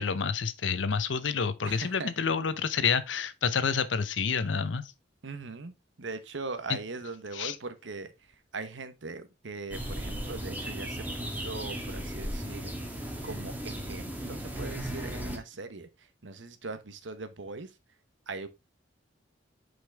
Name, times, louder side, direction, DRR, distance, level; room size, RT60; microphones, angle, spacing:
voice 1, 0.0-4.8 6.7-6.8 7.3-7.5, left 6 dB, 80° left, 0.7 m, -28 dB
voice 2, 1.6-2.1 5.2-12.7 13.2-17.8 18.3-18.5, right 3 dB, 80° right, 1.0 m, -40 dB
sound 1, 9.7-15.4, right 1 dB, 10° right, 1.4 m, -36 dB
6.3 x 5.3 x 3.4 m
head